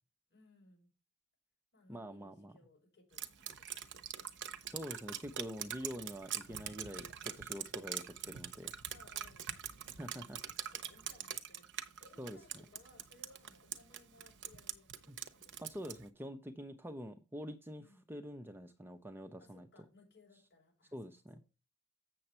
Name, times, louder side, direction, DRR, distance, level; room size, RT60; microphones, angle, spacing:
voice 1, 0.3-0.9 1.7-3.9 6.9-7.2 8.9-9.9 10.2-15.7 17.8-18.1 19.4-20.9, left 2 dB, 50° left, 0 dB, 4.4 m, -64 dB
voice 2, 1.9-2.5 4.7-8.7 10.0-10.4 12.2-12.4 15.1-15.2 15.6-19.7 20.9-21.4, equal, 10° right, 7 dB, 0.5 m, -46 dB
Drip, 3.2-16.1, right 9 dB, 55° right, 0.7 m, -44 dB
7.7 x 6.8 x 4.3 m, 0.29 s
head